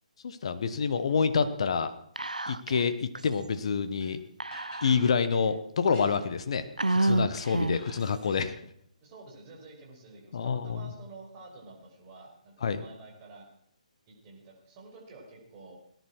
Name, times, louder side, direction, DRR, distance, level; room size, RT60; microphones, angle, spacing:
voice 1, 0.2-1.9 2.5-4.2 4.8-8.5 10.3-10.8 12.6-12.8, left 5 dB, 50° left, 10 dB, 1.3 m, -27 dB
Whispering, 2.2-2.9 3.2-3.3 4.4-5.3 5.9-6.0 6.8-8.0, right 2 dB, 85° right, 0.7 m, -29 dB
sound 1, 4.0-4.1 4.5-5.0 5.8-6.4 7.5-8.4, left 1 dB, 20° left, 6.0 m, -49 dB
voice 2, 9.0-13.5 14.1-15.7, right 3 dB, 25° right, -1 dB, 5.5 m, -50 dB
18.5 x 11.0 x 6.3 m, 0.70 s
figure-of-eight pair, 140°, 4 cm